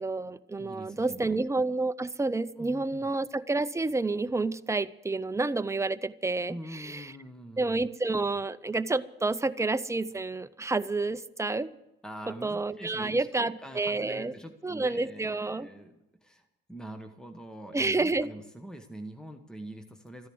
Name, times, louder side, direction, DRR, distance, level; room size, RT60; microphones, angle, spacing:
voice 1, 0.0-7.1 7.6-11.7 12.3-14.3 14.6-15.7 17.7-18.3, right 3 dB, 15° right, 12 dB, 0.6 m, -29 dB
voice 2, 0.6-1.4 2.6-3.1 6.5-7.9 12.0-20.3, right 1 dB, 5° left, 6 dB, 1.2 m, -44 dB
14.5 x 10.5 x 7.9 m, 0.94 s
cardioid pair, 90°, 20 cm